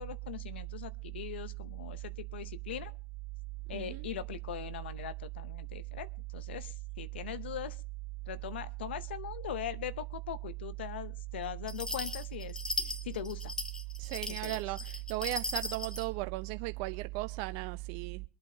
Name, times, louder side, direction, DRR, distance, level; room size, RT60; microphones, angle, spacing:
voice 1, 0.0-2.9 3.7-7.8 8.3-12.6 13.0-13.5 14.3-14.6, left 10 dB, 80° left, 0.7 m, -41 dB
voice 2, 3.7-4.1 14.0-18.3, right 20 dB, 65° right, 0.5 m, -36 dB
sound 1, 11.7-16.1, left 3 dB, 10° left, 1.7 m, -38 dB
25.0 x 8.4 x 2.9 m
hypercardioid pair, 85°, 6 cm